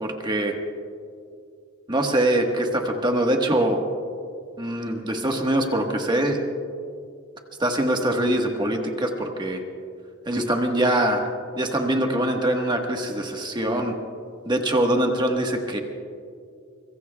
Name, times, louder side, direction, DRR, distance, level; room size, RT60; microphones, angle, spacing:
voice 1, 0.0-0.5 1.9-3.8 4.6-6.4 7.6-9.6 10.3-11.3 11.6-13.9 14.4-15.8, right 1 dB, 20° right, 2 dB, 1.3 m, -23 dB
25.0 x 23.0 x 2.3 m, 2.3 s
head